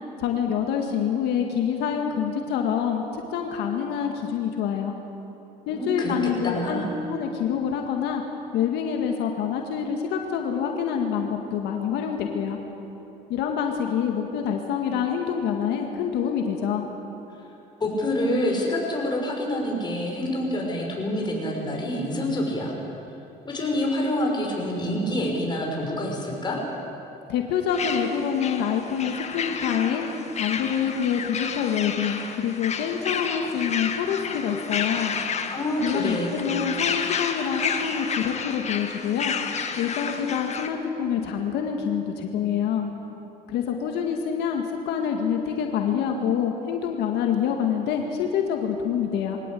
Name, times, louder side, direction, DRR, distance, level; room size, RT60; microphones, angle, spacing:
voice 1, 0.2-4.9 5.7-8.2 8.5-12.6 13.3-16.8 27.3-30.1 30.4-35.1 35.8-39.4 39.8-42.9 43.5-49.4, left 8 dB, 85° left, 3 dB, 1.9 m, -26 dB
voice 2, 5.7-6.2 6.4-6.9 17.8-22.7 23.4-26.6 35.5-36.3, left 1 dB, 25° left, -1 dB, 5.9 m, -27 dB
sound 1, 27.7-40.7, left 6 dB, 40° left, 1.7 m, -31 dB
23.0 x 18.0 x 8.5 m, 2.9 s
cardioid pair, 110°, 17 cm